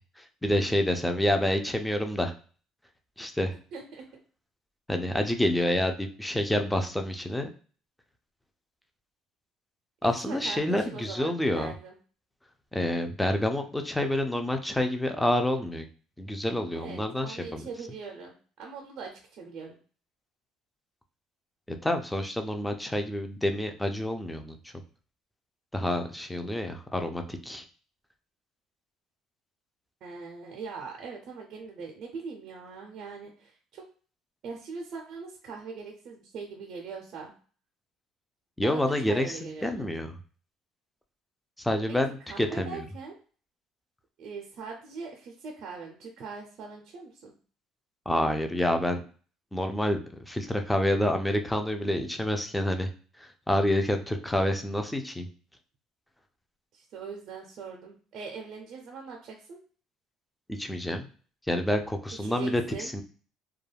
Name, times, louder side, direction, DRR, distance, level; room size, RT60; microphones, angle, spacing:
voice 1, 0.2-2.3 3.2-3.6 4.9-7.5 10.0-11.7 12.7-15.8 16.2-17.7 21.7-24.6 25.7-27.6 38.6-40.1 41.6-42.9 48.1-49.0 49.5-52.9 53.2-55.3 60.5-61.1 61.5-63.0, left 1 dB, 5° left, 6 dB, 0.4 m, -28 dB
voice 2, 3.7-4.0 10.0-11.9 16.7-19.8 30.0-33.8 34.4-37.3 38.6-39.9 41.9-42.0 42.3-43.2 44.2-47.3 56.7-59.6 62.2-62.9, right 5 dB, 60° right, 1 dB, 0.5 m, -41 dB
2.3 x 2.1 x 3.3 m, 0.40 s
cardioid pair, 105°, 0 cm